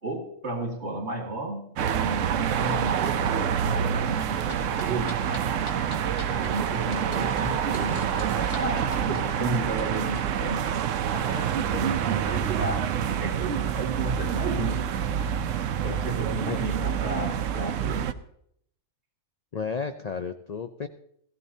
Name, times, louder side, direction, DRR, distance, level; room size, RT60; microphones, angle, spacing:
voice 1, 0.0-5.5 6.3-15.1 15.8-18.1, right 2 dB, 55° right, 3 dB, 2.3 m, -33 dB
sound 1, 1.8-18.1, right 9 dB, 75° right, 1.0 m, -27 dB
sound 2, 4.5-10.2, left 2 dB, 65° left, 1.8 m, -42 dB
voice 2, 19.5-20.9, left 5 dB, 50° left, 7 dB, 0.5 m, -32 dB
17.0 x 14.5 x 2.8 m, 0.70 s
omnidirectional pair, 1.4 m